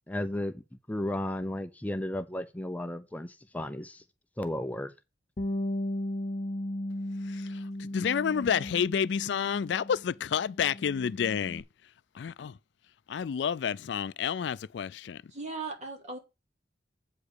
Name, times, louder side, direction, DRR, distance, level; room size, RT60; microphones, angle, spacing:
voice 1, 0.1-0.6 0.9-4.0 4.4-4.9, left 1 dB, 10° left, 0.5 m, -34 dB
Bass guitar, 5.4-10.1 10.4-11.6, left 1 dB, 40° left, 0.8 m, -36 dB
voice 2, 7.8-11.6 12.2-12.5 13.1-15.2, left 7 dB, 70° left, 0.4 m, -29 dB
voice 3, 15.3-16.2, right 4 dB, 40° right, 2.4 m, -38 dB
8.2 x 4.9 x 6.5 m
head